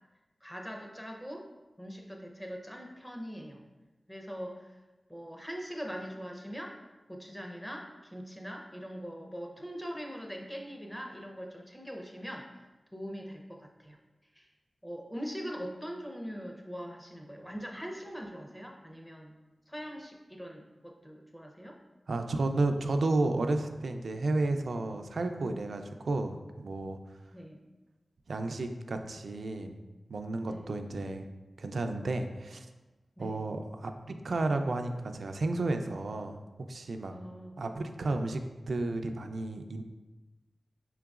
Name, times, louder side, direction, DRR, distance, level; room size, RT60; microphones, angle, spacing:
voice 1, 0.4-1.4 1.8-3.6 4.1-4.8 5.1-6.7 7.1-12.4 12.9-14.0 14.3-14.5 14.8-19.3 19.7-21.8 27.3-27.6 30.4-30.6 33.2-33.4 37.1-37.6, equal, 5° left, 1 dB, 0.7 m, -42 dB
voice 2, 22.1-27.0 28.3-29.8 30.1-31.3 31.6-32.7 33.2-36.4 36.7-37.1 37.6-38.4 38.7-39.8, right 2 dB, 75° right, 6 dB, 0.4 m, -32 dB
5.7 x 3.8 x 2.4 m, 1.2 s
wide cardioid pair, 85°, 0 cm